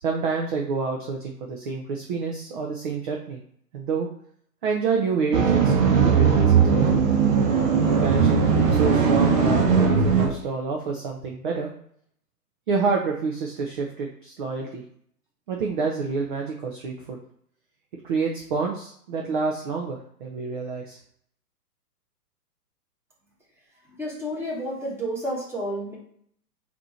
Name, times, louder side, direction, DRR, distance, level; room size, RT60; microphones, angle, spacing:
voice 1, 0.0-3.4 3.7-4.1 4.6-7.1 7.9-11.7 12.7-14.8 15.5-17.2 18.0-21.0, right 4 dB, 35° right, 1 dB, 0.5 m, -28 dB
sound 1, 5.3-10.3, right 6 dB, 55° right, 1.1 m, -19 dB
voice 2, 24.0-26.0, equal, 5° right, -5 dB, 1.2 m, -30 dB
4.2 x 2.8 x 4.3 m, 0.67 s
hypercardioid pair, 125°, 48 cm